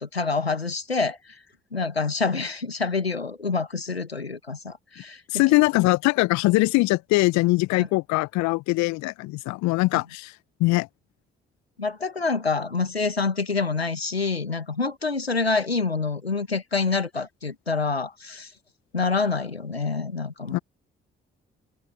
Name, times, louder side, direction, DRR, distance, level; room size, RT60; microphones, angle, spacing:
voice 1, 0.0-1.4 1.7-5.4 7.7-7.9 11.8-18.5 18.9-20.6, left 4 dB, 90° left, 2.1 m, -27 dB
voice 2, 5.3-10.4 10.6-10.9 20.5-20.6, left 22 dB, 65° left, 1.8 m, -22 dB
figure-of-eight pair, 40°, 30 cm